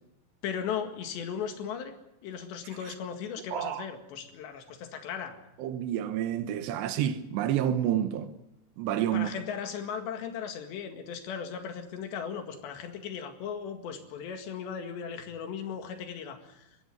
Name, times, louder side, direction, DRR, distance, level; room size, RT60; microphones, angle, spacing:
voice 1, 0.4-1.9 2.2-5.4 9.1-16.7, left 7 dB, 80° left, 4.1 m, -37 dB
voice 2, 3.5-3.9 5.6-8.3 8.8-9.3, right 10 dB, 80° right, 3.3 m, -29 dB
21.0 x 16.5 x 9.4 m
omnidirectional pair, 5.0 m